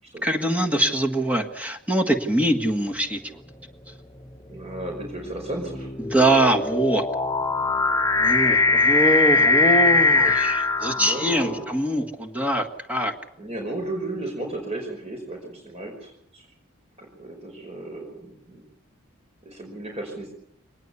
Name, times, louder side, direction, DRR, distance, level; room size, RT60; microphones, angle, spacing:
voice 1, 0.2-3.4 3.9-4.0 6.0-7.0 8.2-13.1, right 1 dB, 5° right, 4 dB, 1.7 m, -23 dB
sound 1, 2.3-2.7 3.5-11.7, left 3 dB, 20° left, 1.2 m, -22 dB
voice 2, 4.5-5.9 11.0-11.6 13.4-16.5 17.0-18.6 19.4-20.3, right 2 dB, 30° right, 1 dB, 5.3 m, -34 dB
24.5 x 20.0 x 7.1 m, 0.71 s
head